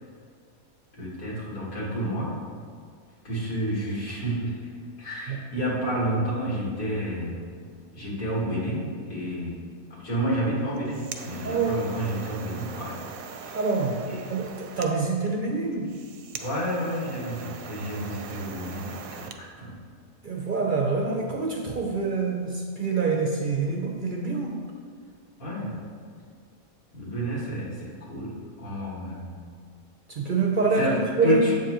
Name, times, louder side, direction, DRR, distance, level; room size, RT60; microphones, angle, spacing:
voice 1, 1.0-2.4 3.2-4.6 5.0-7.4 7.9-9.6 9.9-13.0 13.4-13.6 14.1-14.2 16.4-19.7 25.4-25.8 26.9-29.4 30.8-31.5, equal, 90° left, -5 dB, 2.4 m, -30 dB
sound 1, 10.6-19.4, right 6 dB, 90° right, 1.0 m, -41 dB
voice 2, 11.4-11.8 13.5-15.9 20.2-24.6 30.1-31.5, right 4 dB, 50° right, 0 dB, 0.6 m, -26 dB
7.6 x 7.1 x 3.0 m, 2.1 s
omnidirectional pair, 1.4 m